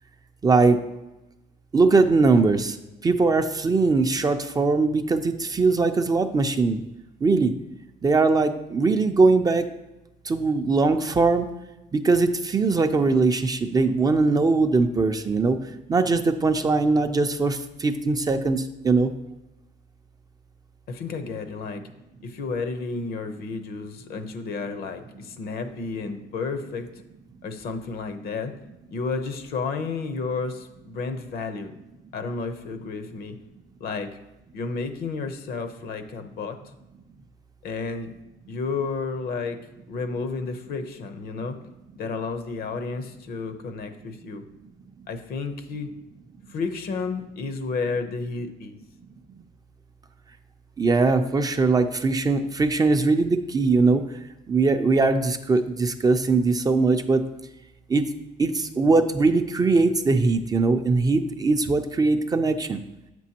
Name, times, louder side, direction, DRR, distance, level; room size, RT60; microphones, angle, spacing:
voice 1, 0.4-0.8 1.7-2.8 3.0-6.8 7.2-7.5 8.0-9.7 10.2-11.5 11.9-15.6 15.9-19.1 50.8-54.0 54.5-57.2 57.9-58.0 58.4-62.8, right 3 dB, 20° right, 7 dB, 0.4 m, -21 dB
voice 2, 20.9-21.8 22.2-26.9 27.4-28.5 28.9-31.8 32.1-33.4 33.8-34.2 34.5-36.6 37.6-38.1 38.5-39.6 39.9-41.6 42.0-44.4 45.1-45.9 46.5-48.8, left 4 dB, 65° left, 8 dB, 0.7 m, -31 dB
7.3 x 6.1 x 2.8 m, 0.98 s
cardioid pair, 110°, 17 cm